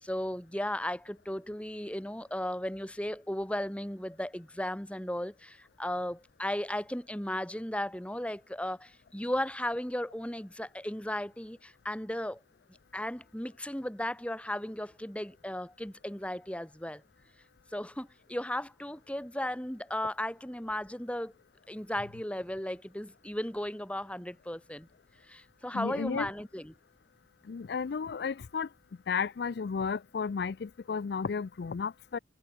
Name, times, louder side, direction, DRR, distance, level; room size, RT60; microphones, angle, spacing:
voice 1, 0.0-12.4 12.9-17.0 17.7-21.3 21.7-24.9 25.3-26.7, left 1 dB, 5° left, 1.9 m, -35 dB
voice 2, 25.7-26.3 27.5-28.7 29.1-32.2, left 5 dB, 65° left, 0.4 m, -33 dB
head